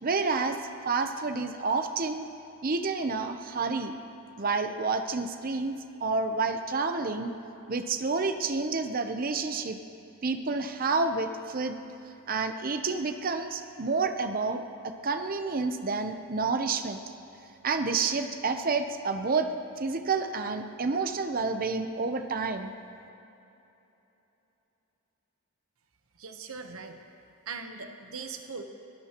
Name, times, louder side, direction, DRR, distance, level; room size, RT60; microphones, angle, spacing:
voice 1, 0.0-0.6 0.8-2.2 2.6-3.9 4.4-7.3 7.7-9.8 10.2-11.8 12.3-17.0 17.6-22.7, right 4 dB, 40° right, 7 dB, 0.7 m, -29 dB
voice 2, 26.2-27.0 27.5-28.6, right 5 dB, 70° right, 6 dB, 1.0 m, -40 dB
22.5 x 17.0 x 3.0 m, 3.0 s
head